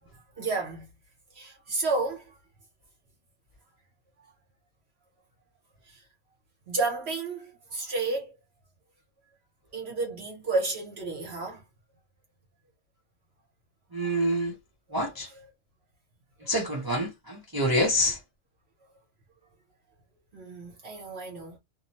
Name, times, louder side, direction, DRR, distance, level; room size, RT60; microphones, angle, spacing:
voice 1, 0.4-0.9 1.3-2.4 5.9-6.0 6.7-8.4 9.7-11.6 15.3-15.5 20.3-21.6, right 3 dB, 60° right, 1.1 m, -31 dB
voice 2, 13.9-14.5 14.9-15.3 16.5-18.2, equal, 30° right, 0.5 m, -26 dB
2.7 x 2.0 x 2.8 m
omnidirectional pair, 1.3 m